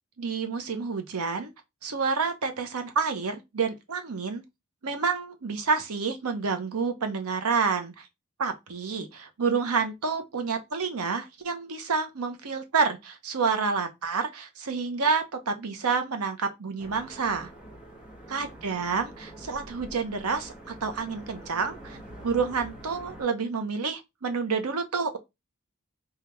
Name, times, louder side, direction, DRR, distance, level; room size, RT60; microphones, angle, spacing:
voice 1, 0.2-1.5 1.8-4.4 4.8-8.1 8.4-17.5 18.3-22.0 22.2-25.2, right 5 dB, 90° right, 0.8 m, -29 dB
sound 1, 16.8-23.2, right 1 dB, 5° right, 1.0 m, -45 dB
3.5 x 2.4 x 4.3 m
head